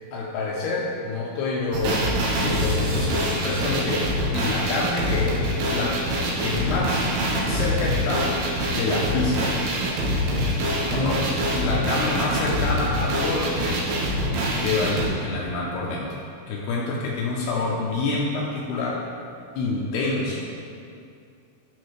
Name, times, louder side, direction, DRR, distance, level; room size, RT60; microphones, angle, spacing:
voice 1, 0.1-5.4 5.7-6.0 6.4-7.2 7.5-8.3 8.7-9.7 10.9-13.8 14.6-19.0 19.6-20.4, left 3 dB, 85° left, -3 dB, 2.3 m, -27 dB
sound 1, 1.7-15.1, equal, 70° right, 2.7 m, -25 dB
12.0 x 5.6 x 3.3 m, 2.5 s
omnidirectional pair, 5.6 m